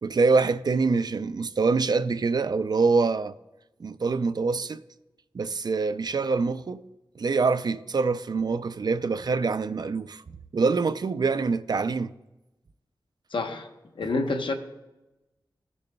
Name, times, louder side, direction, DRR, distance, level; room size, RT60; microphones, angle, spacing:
voice 1, 0.0-3.3 3.8-4.8 5.3-6.8 7.2-10.2 10.5-12.1, right 4 dB, 50° right, 0.4 m, -25 dB
voice 2, 13.3-13.7 14.0-14.5, left 3 dB, 75° left, 1.0 m, -27 dB
17.0 x 6.9 x 2.3 m
wide cardioid pair, 70°, 9 cm